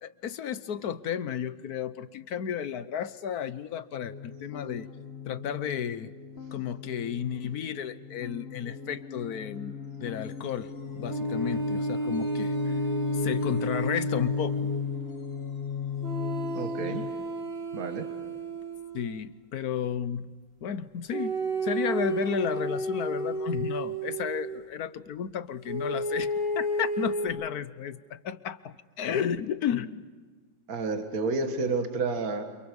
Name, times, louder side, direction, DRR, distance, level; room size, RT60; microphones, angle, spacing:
voice 1, 0.0-4.9 5.3-6.1 6.5-9.7 10.0-12.8 13.1-14.5 18.9-20.3 20.6-30.0, left 8 dB, 60° left, 13 dB, 1.2 m, -33 dB
sound 1, 3.9-17.1, left 7 dB, 35° left, 1.3 m, -36 dB
sound 2, 11.1-14.8 16.0-19.1 21.1-24.6 25.7-27.3, right 2 dB, 70° right, 6.2 m, -32 dB
voice 2, 16.5-17.0 17.7-18.1 30.7-32.4, right 3 dB, 50° right, 6 dB, 2.2 m, -30 dB
29.5 x 28.0 x 5.4 m, 1.4 s
omnidirectional pair, 2.1 m